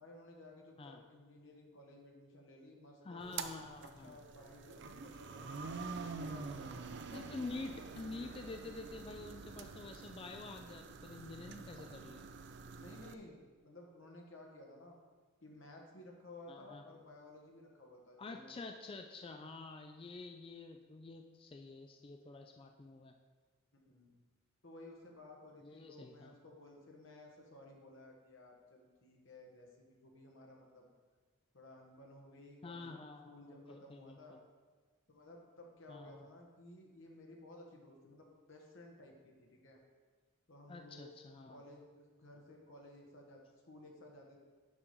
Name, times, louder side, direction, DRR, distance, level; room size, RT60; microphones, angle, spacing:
voice 1, 0.0-3.6 4.0-5.7 6.3-6.9 12.7-15.0 15.4-18.8 23.8-24.2 24.6-30.9 31.5-32.9 33.3-34.4 35.1-39.8 40.5-41.2 41.5-44.4, left 1 dB, 60° left, 0 dB, 1.4 m, -56 dB
voice 2, 3.0-4.1 7.1-12.2 16.5-16.8 18.2-23.1 25.6-26.3 32.6-34.4 35.9-36.2 40.7-41.6, left 3 dB, 25° left, 4 dB, 0.3 m, -48 dB
sound 1, 3.2-13.1, right 4 dB, 50° right, 0.4 m, -47 dB
7.2 x 4.9 x 5.4 m, 1.4 s
head